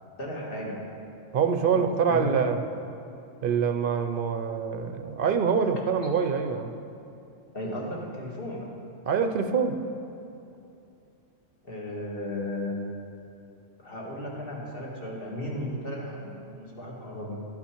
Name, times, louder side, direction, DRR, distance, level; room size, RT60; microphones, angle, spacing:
voice 1, 0.2-0.9 1.6-2.3 7.5-8.7 11.6-12.8 13.8-17.5, left 1 dB, 45° left, -3 dB, 1.9 m, -35 dB
voice 2, 1.3-2.6 3.4-6.7 9.1-9.8, right 6 dB, 55° right, 7 dB, 0.7 m, -25 dB
12.0 x 8.5 x 4.5 m, 2.7 s
omnidirectional pair, 1.3 m